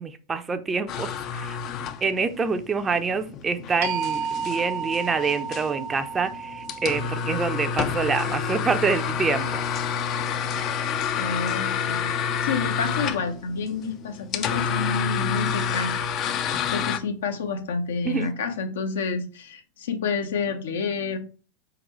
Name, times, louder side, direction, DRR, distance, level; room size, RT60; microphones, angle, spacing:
voice 1, 0.0-1.6 2.0-9.6 18.0-18.3, right 5 dB, 20° right, 0.5 m, -26 dB
sound 1, 0.9-17.0, left 7 dB, 40° left, 0.5 m, -29 dB
sound 2, 3.8-9.8, right 6 dB, 65° right, 0.9 m, -33 dB
voice 2, 11.2-16.4 16.7-21.2, left 5 dB, 70° left, 0.7 m, -29 dB
4.4 x 3.9 x 3.0 m
hypercardioid pair, 95°, 0 cm